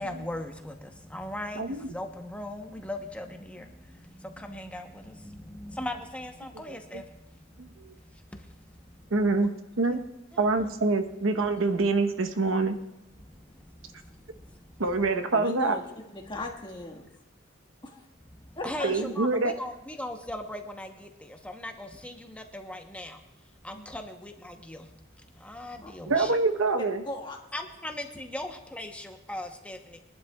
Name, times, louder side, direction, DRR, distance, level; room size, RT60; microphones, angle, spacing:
voice 1, 0.0-3.7 4.2-7.0 9.3-9.4 9.9-10.0 10.3-10.7 18.6-23.2 23.6-24.9 25.4-26.3 27.5-30.0, left 1 dB, 5° left, 4 dB, 0.8 m, -38 dB
voice 2, 1.6-1.9 7.6-7.9 9.1-10.0 10.4-12.8 14.8-15.8 18.8-19.5 26.1-27.0, right 3 dB, 85° right, 8 dB, 0.9 m, -25 dB
voice 3, 15.3-15.8 16.1-17.1 17.8-18.0 18.6-18.9 23.7-23.8 25.8-25.9 27.0-27.4, left 2 dB, 25° left, 1 dB, 1.6 m, -37 dB
22.5 x 11.5 x 2.3 m, 0.96 s
head